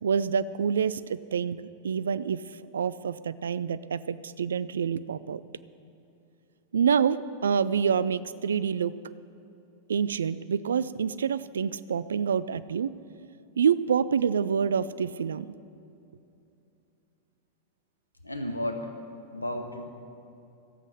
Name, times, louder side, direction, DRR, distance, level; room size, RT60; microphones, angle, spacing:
voice 1, 0.0-2.4 2.7-5.4 6.7-8.9 9.9-12.9 13.6-15.5, right 7 dB, 65° right, 16 dB, 0.3 m, -27 dB
voice 2, 18.2-18.9 19.3-19.9, left 1 dB, 85° left, 5 dB, 1.0 m, -33 dB
13.5 x 7.6 x 6.3 m, 2.8 s
figure-of-eight pair, 90°, 0 cm